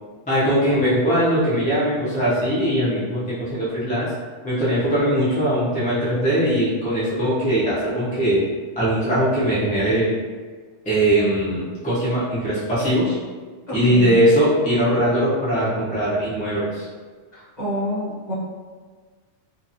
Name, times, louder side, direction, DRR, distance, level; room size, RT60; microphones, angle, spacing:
voice 1, 0.3-4.1 4.4-8.4 8.8-10.1 10.8-13.2 13.7-16.9, equal, 10° left, -11 dB, 0.5 m, -20 dB
voice 2, 13.7-14.2 17.3-18.3, equal, 35° left, -11 dB, 1.2 m, -27 dB
2.6 x 2.5 x 2.7 m, 1.4 s
omnidirectional pair, 1.4 m